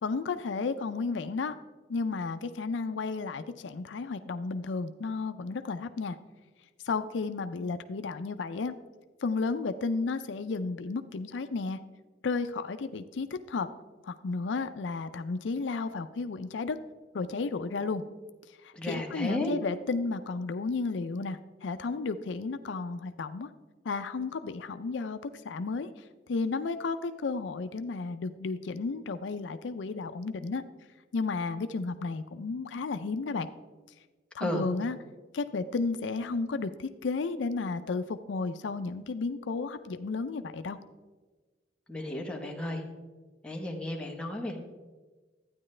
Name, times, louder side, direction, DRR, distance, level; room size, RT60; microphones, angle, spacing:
voice 1, 0.0-1.5 1.9-6.2 6.8-8.7 9.2-11.8 12.2-13.7 14.0-16.8 17.1-18.0 18.6-23.5 23.8-25.9 26.3-30.6 31.1-33.5 34.3-35.0 35.3-40.8, left 4 dB, 80° left, 10 dB, 0.5 m, -33 dB
voice 2, 18.7-19.5 34.4-34.7 41.9-42.8 43.4-44.6, left 1 dB, 5° left, 0 dB, 1.1 m, -33 dB
12.5 x 9.4 x 3.2 m, 1.3 s
head